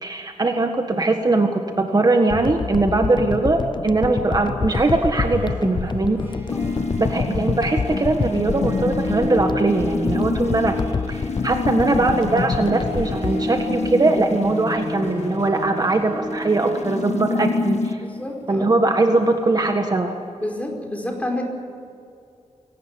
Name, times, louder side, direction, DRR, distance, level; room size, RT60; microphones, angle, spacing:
voice 1, 0.0-6.2 7.0-10.8 11.1-18.0 18.5-20.1, right 2 dB, 35° right, 4 dB, 1.7 m, -21 dB
sound 1, 2.3-14.5 15.0-15.1, left 5 dB, 40° left, 0.5 m, -28 dB
Harp, 4.5-19.9, equal, 15° right, 6.5 m, -34 dB
voice 2, 6.2-6.7 18.0-18.7 20.4-21.4, left 1 dB, 10° left, 1 dB, 4.9 m, -30 dB
sound 2, 6.5-17.9, left 4 dB, 70° left, 1.4 m, -28 dB
23.5 x 18.0 x 9.1 m, 2.4 s
wide cardioid pair, 115°, 12 cm